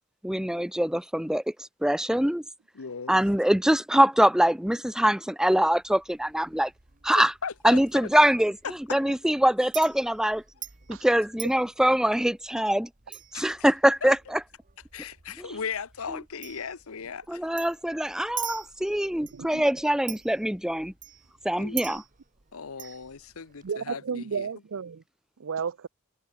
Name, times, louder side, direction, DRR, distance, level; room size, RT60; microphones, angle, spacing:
voice 1, 0.2-2.4 3.1-6.7 7.0-7.3 7.6-10.4 10.9-12.9 13.3-14.4 15.4-15.5 17.3-20.9 21.4-22.0, equal, 5° right, 0.7 m, -23 dB
voice 2, 2.8-3.2 7.1-8.1 8.9-9.0 13.3-13.5 14.0-14.1 14.9-17.4 21.6-22.0 22.5-24.5, left 6 dB, 70° left, 0.9 m, -37 dB
Chink clink, 5.5-23.7, right 12 dB, 40° right, 1.7 m, -45 dB
voice 3, 19.3-19.6 23.6-25.0 25.4-25.9, right 6 dB, 65° right, 0.5 m, -33 dB
head